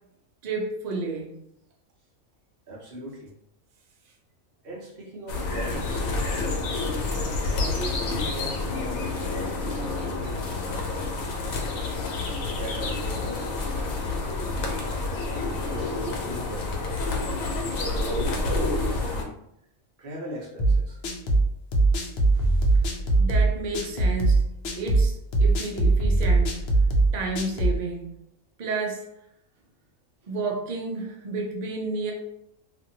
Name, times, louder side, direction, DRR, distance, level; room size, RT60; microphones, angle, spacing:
voice 1, 0.4-1.3 6.6-6.8 10.8-10.9 22.4-22.5 23.2-24.5 24.7-26.6 27.1-28.2 28.6-29.1 30.3-32.1, right 3 dB, 80° right, 0 dB, 0.3 m, -31 dB
voice 2, 2.7-3.3 4.6-6.0 7.5-10.8 12.4-13.6 15.3-16.7 17.6-19.4 20.0-21.0, right 1 dB, 50° right, -4 dB, 0.9 m, -38 dB
sound 1, 5.3-19.2, left 3 dB, 85° left, 1.1 m, -28 dB
sound 2, 20.6-27.8, right 2 dB, 65° left, 0.7 m, -21 dB
2.7 x 2.5 x 2.7 m, 0.76 s
omnidirectional pair, 1.4 m